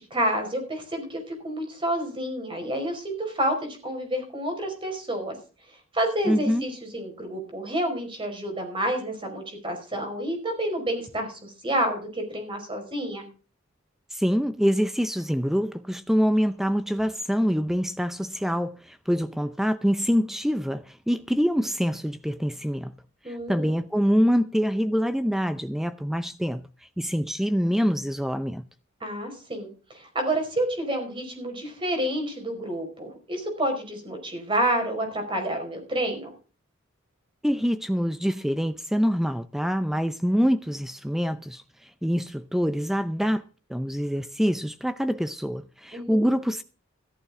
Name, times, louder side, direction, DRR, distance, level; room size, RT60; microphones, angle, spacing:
voice 1, 0.0-5.3 5.9-13.3 23.2-23.7 29.0-36.3 45.9-46.3, right 1 dB, 25° right, 5.1 m, -29 dB
voice 2, 6.3-6.6 14.1-22.9 23.3-26.7 27.0-28.6 37.4-43.4 43.7-46.6, equal, ahead, 0.5 m, -25 dB
14.0 x 13.0 x 3.7 m
head